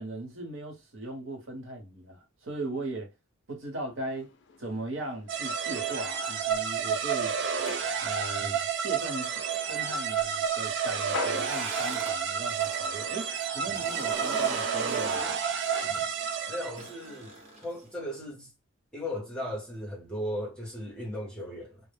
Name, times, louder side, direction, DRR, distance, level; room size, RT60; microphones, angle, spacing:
voice 1, 0.0-3.1 3.5-4.3 4.6-7.3 8.0-9.3 9.7-15.3, right 2 dB, 75° right, 1.0 m, -38 dB
sound 1, 4.1-17.8, left 4 dB, 60° left, 0.4 m, -46 dB
sound 2, 5.3-17.0, right 7 dB, 60° right, 0.4 m, -30 dB
sound 3, 10.9-12.9 13.2-18.0, right 2 dB, 35° right, 0.9 m, -39 dB
voice 2, 16.5-18.5 18.9-21.8, left 1 dB, 5° left, 0.8 m, -37 dB
2.1 x 2.0 x 3.2 m
head